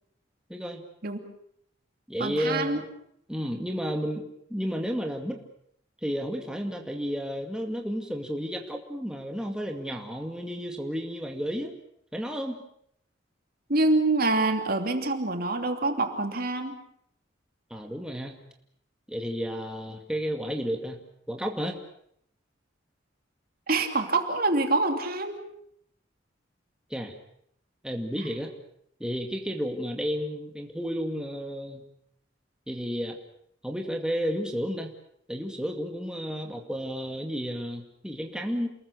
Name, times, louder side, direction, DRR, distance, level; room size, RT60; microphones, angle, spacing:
voice 1, 0.5-0.8 2.1-2.8 3.3-5.4 6.0-11.7 12.1-12.6 17.7-18.4 19.1-21.8 26.9-27.1 27.8-28.5 29.0-31.9 32.7-33.2 33.6-34.9 35.3-38.7, equal, 5° right, 2 dB, 2.2 m, -32 dB
voice 2, 2.2-2.8 13.7-16.8 23.7-25.4, right 2 dB, 50° right, 5 dB, 2.8 m, -26 dB
28.5 x 21.0 x 6.9 m, 0.71 s
head